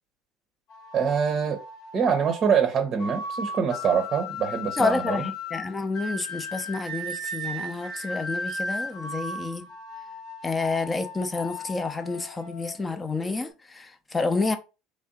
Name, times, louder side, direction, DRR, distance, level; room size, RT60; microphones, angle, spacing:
sound 1, 0.7-13.5, left 1 dB, 60° left, 1.3 m, -36 dB
voice 1, 0.9-1.6 1.9-5.2, right 6 dB, 40° right, 0.7 m, -24 dB
voice 2, 4.8-9.7 10.4-14.6, left 3 dB, 20° left, 0.6 m, -29 dB
3.3 x 2.6 x 3.7 m
hypercardioid pair, 80°, 0 cm